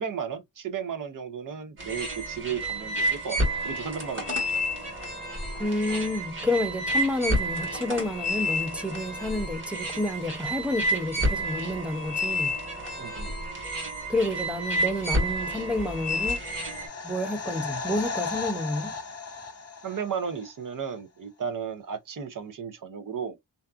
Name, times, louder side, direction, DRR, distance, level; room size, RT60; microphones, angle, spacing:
voice 1, 0.0-3.4 3.6-4.6 13.0-13.3 19.8-23.4, right 7 dB, 55° right, 0.6 m, -34 dB
sound 1, 1.8-16.9, equal, 30° right, 1.4 m, -30 dB
voice 2, 5.6-12.5 14.1-16.4 17.0-18.9, left 1 dB, 5° right, 0.4 m, -29 dB
sound 2, 15.6-20.5 20.8-20.9, left 4 dB, 40° left, 0.6 m, -36 dB
2.7 x 2.3 x 2.4 m
wide cardioid pair, 140°, 40 cm